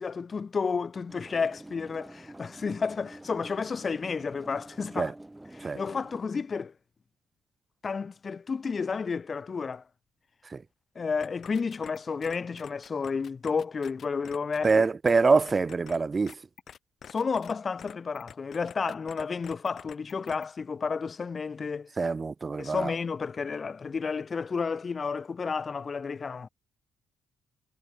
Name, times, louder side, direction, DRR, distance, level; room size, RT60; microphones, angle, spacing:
voice 1, 0.0-5.1 5.5-6.7 7.8-9.8 10.9-14.8 17.1-21.9 22.6-26.5, left 5 dB, 35° left, 1.4 m, -31 dB
sound 1, 1.1-6.2, right 1 dB, 10° right, 6.6 m, -48 dB
sound 2, 11.2-14.7 15.0-15.1 15.4-16.0 16.3-17.5 17.8-20.4, left 8 dB, 55° left, 7.8 m, -47 dB
voice 2, 14.6-16.3 22.0-22.9, right 4 dB, 30° right, 0.7 m, -24 dB
cardioid pair, 90°, 0 cm